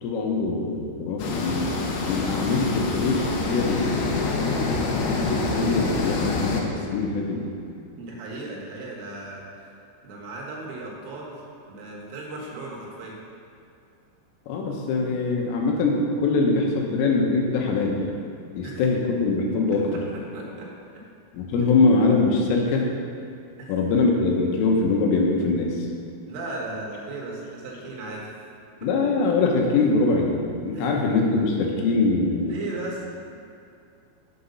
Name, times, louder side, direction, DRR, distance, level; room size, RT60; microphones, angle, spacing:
voice 1, 0.0-1.7 2.1-7.5 14.5-18.0 18.5-19.9 21.3-22.9 23.7-25.9 28.8-32.5, left 3 dB, 90° left, 0 dB, 3.8 m, -23 dB
sound 1, 1.2-6.6, left 3 dB, 70° left, 3.0 m, -26 dB
voice 2, 8.0-9.7 10.0-11.4 11.7-13.2 18.6-18.8 19.9-20.7 21.6-21.7 23.6-23.7 26.3-28.3 30.7-30.9 32.4-33.0, right 2 dB, 85° right, -3 dB, 4.2 m, -36 dB
8.4 x 8.2 x 5.4 m, 2.5 s
omnidirectional pair, 5.7 m